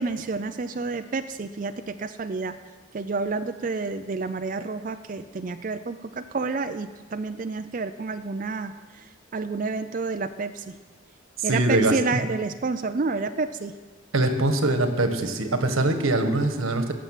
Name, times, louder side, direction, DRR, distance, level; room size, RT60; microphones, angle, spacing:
voice 1, 0.0-2.6 2.9-10.8 11.4-13.8, right 4 dB, 40° right, 8 dB, 0.4 m, -29 dB
voice 2, 11.4-12.2 14.1-16.9, right 2 dB, 90° right, 7 dB, 1.4 m, -23 dB
17.0 x 7.1 x 7.3 m, 1.3 s
head